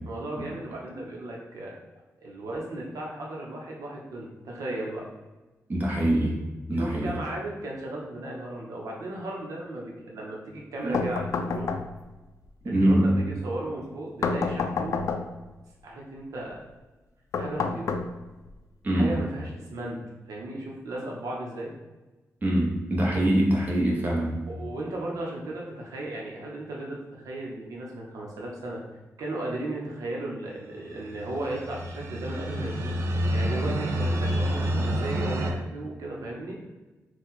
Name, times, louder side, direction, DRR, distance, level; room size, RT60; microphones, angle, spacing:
voice 1, 0.0-1.7 2.2-5.0 6.7-11.7 12.6-15.0 15.8-16.6 17.4-18.0 18.9-20.0 20.3-21.7 24.5-28.8 29.2-32.9 33.3-36.6, right 1 dB, 85° right, -2 dB, 0.9 m, -35 dB
voice 2, 5.7-6.4 6.7-7.1 10.8-11.0 12.6-13.0 18.8-19.1 22.4-24.4, right 1 dB, 30° right, -4 dB, 1.0 m, -23 dB
sound 1, 10.9-12.2 14.2-15.5 17.3-18.5, left 4 dB, 65° left, 0.4 m, -29 dB
sound 2, 31.0-35.5, equal, 55° right, 0.5 m, -28 dB
4.4 x 2.3 x 4.0 m, 1.1 s
wide cardioid pair, 155°, 6 cm